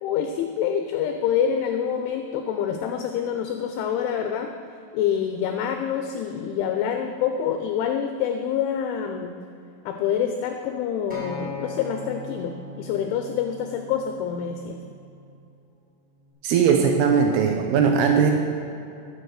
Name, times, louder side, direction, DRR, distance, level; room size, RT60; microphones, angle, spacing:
voice 1, 0.0-4.5 4.9-9.3 9.9-14.8, left 8 dB, 80° left, 5 dB, 2.9 m, -26 dB
Acoustic guitar, 11.1-15.4 16.2-16.3, left 1 dB, ahead, 2.0 m, -40 dB
voice 2, 16.4-18.3, right 6 dB, 90° right, 2 dB, 2.3 m, -19 dB
13.0 x 8.0 x 6.4 m, 2.7 s
omnidirectional pair, 5.9 m